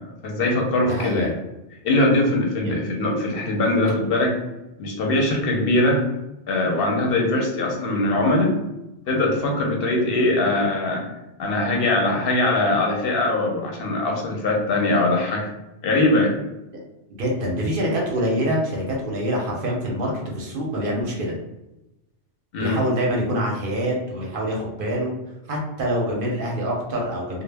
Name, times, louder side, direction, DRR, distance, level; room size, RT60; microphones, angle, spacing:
voice 1, 0.0-1.3 1.8-4.3 4.8-6.0 6.5-8.5 9.1-11.1 11.4-15.5 15.8-16.3 22.5-22.8, left 2 dB, 65° left, 0 dB, 0.7 m, -21 dB
voice 2, 0.8-1.3 2.6-2.8 17.2-21.3 22.6-25.2 25.5-27.4, equal, 55° right, -2 dB, 0.7 m, -25 dB
2.0 x 2.0 x 3.3 m, 0.96 s
omnidirectional pair, 1.2 m